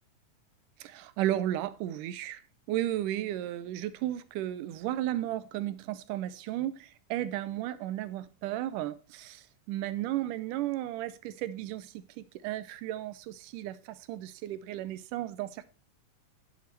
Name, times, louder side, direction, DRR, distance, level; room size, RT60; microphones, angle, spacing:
voice 1, 0.8-2.4 2.7-15.7, right 13 dB, 80° right, 2.1 m, -34 dB
10.5 x 6.9 x 4.3 m
omnidirectional pair, 3.9 m